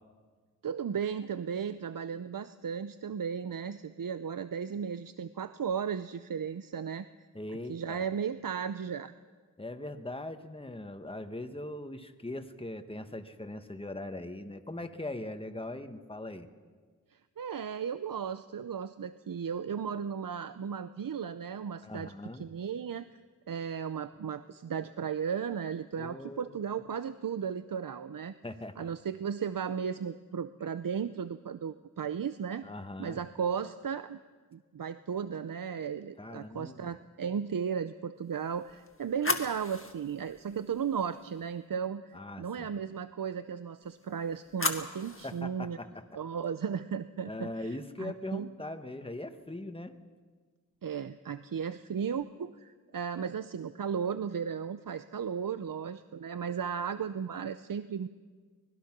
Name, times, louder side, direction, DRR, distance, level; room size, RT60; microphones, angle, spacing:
voice 1, 0.6-7.1 7.7-9.1 17.4-22.1 22.4-23.1 23.5-28.4 28.8-32.7 33.0-34.2 34.5-45.8 46.1-48.5 50.8-58.1, right 7 dB, 85° right, 12 dB, 0.6 m, -35 dB
voice 2, 7.3-8.1 9.6-16.5 21.8-22.5 26.0-26.7 28.4-28.9 32.6-33.2 36.2-36.9 42.1-42.7 45.2-46.2 47.2-49.9, left 1 dB, 15° left, 8 dB, 1.3 m, -41 dB
sound 1, 38.4-41.5 43.9-45.4, left 2 dB, 40° left, 1.8 m, -37 dB
24.5 x 19.5 x 6.0 m, 1.5 s
wide cardioid pair, 75°, 33 cm